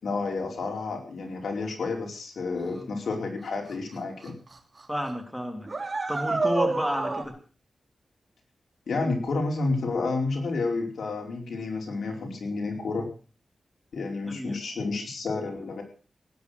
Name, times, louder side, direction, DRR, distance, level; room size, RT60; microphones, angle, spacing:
voice 1, 0.0-4.3 8.9-13.1 13.9-15.8, left 3 dB, 85° left, 1 dB, 4.8 m, -30 dB
voice 2, 2.6-3.0 4.9-7.3 14.2-14.6, equal, 5° left, 4 dB, 3.1 m, -32 dB
sound 1, 3.7-3.8 4.2-4.5 4.8-4.9 5.7-7.2, right 3 dB, 30° right, 3.0 m, -28 dB
18.0 x 10.0 x 6.5 m, 0.39 s
wide cardioid pair, 120°, 0 cm